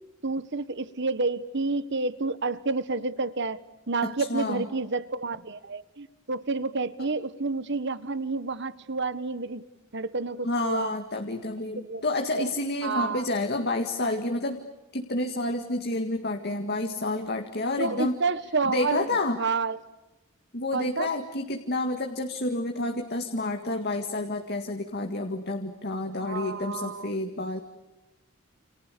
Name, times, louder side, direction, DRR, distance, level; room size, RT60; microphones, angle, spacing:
voice 1, 0.2-3.6 3.9-9.6 9.9-10.9 11.8-12.0 12.4-12.5 12.8-13.2 17.8-19.1 19.4-19.8 20.7-21.1 26.2-27.1, right 3 dB, 55° right, 15 dB, 1.4 m, -29 dB
voice 2, 4.0-4.6 10.4-14.6 14.9-18.2 18.7-19.4 20.5-27.6, left 2 dB, 50° left, 5 dB, 2.0 m, -29 dB
30.0 x 29.0 x 6.9 m, 1.0 s
head